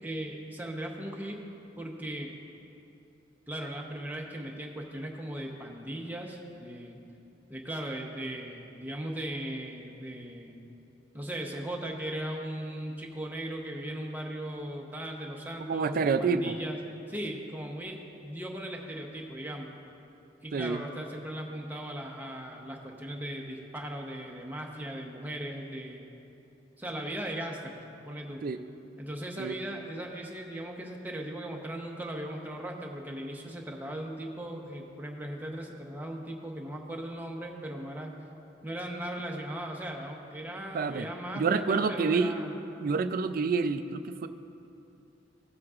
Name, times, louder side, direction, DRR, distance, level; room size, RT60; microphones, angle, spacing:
voice 1, 0.0-1.4 1.8-2.3 3.5-7.0 7.5-10.6 11.1-16.8 17.1-19.7 20.4-26.1 26.8-28.4 29.0-38.2 38.6-42.5, right 1 dB, 10° right, 0 dB, 0.8 m, -38 dB
voice 2, 15.7-16.5 20.5-20.8 28.4-28.6 29.4-29.6 40.7-41.1 41.3-42.4 42.8-44.3, right 4 dB, 50° right, 11 dB, 0.4 m, -28 dB
16.5 x 7.7 x 2.4 m, 2.8 s
head